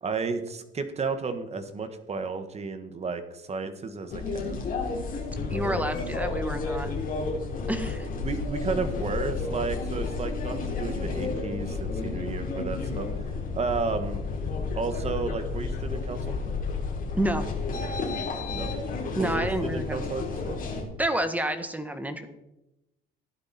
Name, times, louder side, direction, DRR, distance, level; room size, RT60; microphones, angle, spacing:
voice 1, 0.0-4.6 8.2-14.2 14.7-16.4 18.5-18.7 19.2-20.6, right 4 dB, 35° right, 9 dB, 1.8 m, -32 dB
sound 1, 4.1-20.8, left 4 dB, 45° left, 4.4 m, -31 dB
voice 2, 5.5-6.9 7.7-8.1 17.1-17.6 19.1-20.1 21.0-22.3, right 1 dB, 10° right, 8 dB, 1.7 m, -29 dB
14.5 x 12.0 x 4.5 m, 0.92 s
cardioid pair, 115°, 20 cm